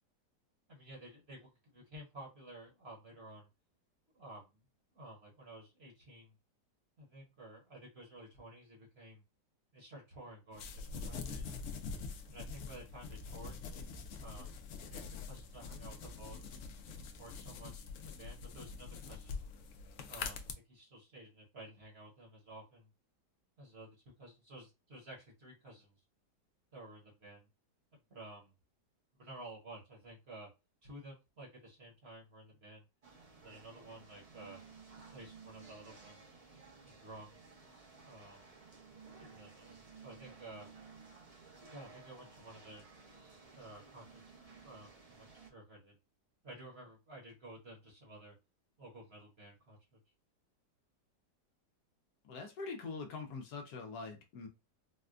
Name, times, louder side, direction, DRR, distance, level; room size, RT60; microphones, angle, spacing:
voice 1, 0.7-3.5 4.1-4.6 4.9-6.3 7.0-9.2 9.7-11.5 12.3-13.6 14.2-14.5 14.9-16.6 17.2-19.5 20.1-22.9 23.6-26.0 26.7-27.5 28.1-28.5 29.1-30.5 30.8-32.8 33.4-34.6 35.1-36.4 36.8-37.4 38.1-38.5 39.2-40.7 41.7-42.8 43.5-46.0 46.4-48.4 48.8-50.0, right 1 dB, 45° right, 1.1 m, -53 dB
sound 1, 10.5-20.5, left 5 dB, 85° left, 0.6 m, -45 dB
sound 2, 33.0-45.5, right 4 dB, 80° right, 0.3 m, -56 dB
voice 2, 52.2-54.5, left 4 dB, 70° left, 1.1 m, -43 dB
4.2 x 2.2 x 2.4 m
omnidirectional pair, 1.9 m